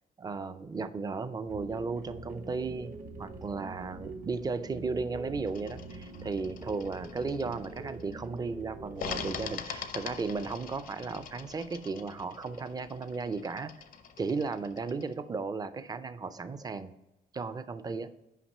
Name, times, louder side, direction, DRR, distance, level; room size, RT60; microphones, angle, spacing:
voice 1, 0.2-13.7 14.2-16.9 17.3-18.1, right 4 dB, 25° right, 13 dB, 0.4 m, -35 dB
sound 1, 1.5-9.4, right 2 dB, 65° right, 1.1 m, -44 dB
sound 2, 5.5-8.1 9.0-15.1, left 7 dB, 70° left, 0.6 m, -44 dB
5.8 x 5.2 x 5.4 m, 0.93 s
cardioid pair, 120°, 15 cm